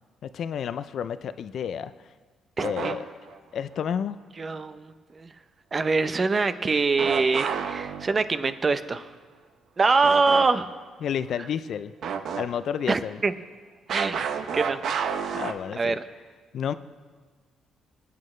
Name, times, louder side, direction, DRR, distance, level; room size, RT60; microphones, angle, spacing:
voice 1, 0.2-2.1 2.6-3.1 3.5-4.2 11.0-11.9 12.4-13.2 15.3-16.0 16.5-16.7, left 8 dB, 65° left, 13 dB, 0.4 m, -30 dB
voice 2, 2.6-3.0 4.4-5.3 5.7-9.1 9.8-10.7 12.9-13.3 13.9-14.2 14.5-14.8 15.2-15.3 15.8-16.0, right 4 dB, 35° right, 11 dB, 0.7 m, -24 dB
sound 1, 2.6-3.4 7.0-8.5 10.0-10.5 10.8-10.9 12.0-12.8 13.9-15.5, right 6 dB, 70° right, 0.8 m, -30 dB
26.0 x 8.7 x 3.2 m, 1.5 s
cardioid pair, 90°, 0 cm